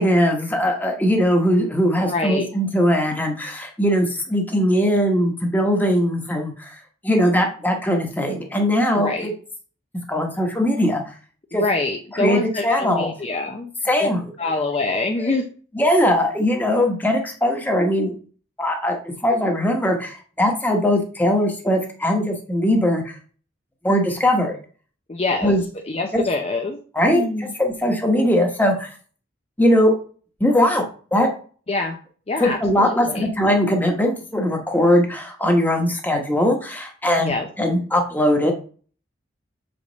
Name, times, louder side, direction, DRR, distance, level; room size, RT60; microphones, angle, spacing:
voice 1, 0.0-9.3 10.1-11.0 11.5-11.6 12.1-13.1 13.8-14.2 15.2-15.3 15.7-18.1 18.6-23.2 23.8-24.6 25.4-25.6 26.1-26.2 26.9-28.9 29.6-29.9 30.4-30.8 31.1-31.3 32.4-37.3 37.6-38.5, equal, 10° left, 2 dB, 1.2 m, -20 dB
voice 2, 2.1-2.5 8.9-9.3 11.5-13.7 14.0-14.1 14.4-15.4 25.1-25.5 25.8-26.8 27.1-27.5 31.7-32.0 32.3-33.3 37.2-37.5, left 3 dB, 35° left, 3 dB, 0.6 m, -25 dB
6.7 x 5.3 x 4.0 m, 0.42 s
head